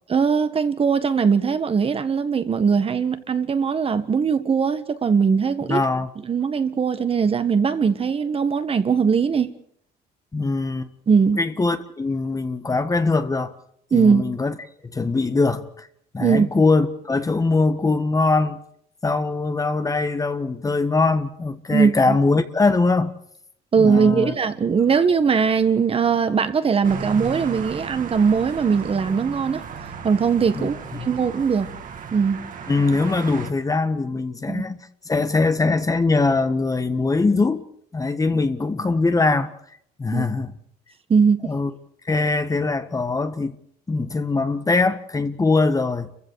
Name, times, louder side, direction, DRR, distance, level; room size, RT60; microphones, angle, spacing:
voice 1, 0.1-5.8 6.2-9.5 11.1-11.4 13.9-14.2 16.2-16.5 21.7-22.2 23.7-29.6 30.0-31.7 32.1-32.4 34.5-34.7 38.3-38.4 40.1-40.3 41.1-41.4, right 6 dB, 35° right, 1.7 m, -20 dB
voice 2, 5.7-6.1 10.3-10.9 11.4-13.5 13.9-14.5 14.9-15.9 16.1-18.6 19.0-23.1 23.8-24.3 30.5-31.1 32.7-37.6 37.9-39.5 40.0-40.5 41.4-41.7 42.0-43.5 43.9-46.1, left 3 dB, 20° left, 1.4 m, -22 dB
sound 1, 26.8-33.5, right 6 dB, 50° right, 2.5 m, -35 dB
29.0 x 15.5 x 6.6 m
cardioid pair, 110°, 17 cm